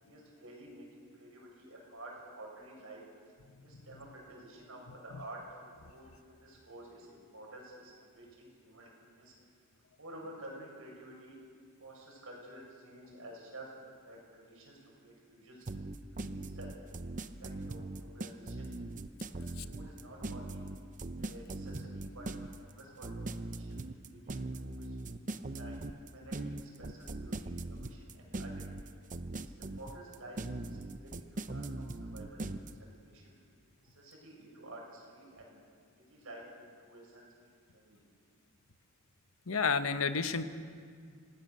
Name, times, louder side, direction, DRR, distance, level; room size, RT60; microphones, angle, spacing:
voice 1, 0.0-3.0 3.6-9.3 10.0-11.4 11.8-13.7 14.0-15.6 16.2-16.7 17.4-18.7 19.3-20.6 21.2-25.0 25.3-29.0 29.4-31.1 31.5-33.4 33.8-35.6 36.0-38.0, right 1 dB, 70° right, -2 dB, 7.1 m, -51 dB
sound 1, 15.7-32.7, right 2 dB, 35° right, 0.7 m, -40 dB
voice 2, 39.5-40.4, left 5 dB, 70° left, 10 dB, 1.0 m, -30 dB
26.5 x 18.0 x 6.8 m, 2.1 s
head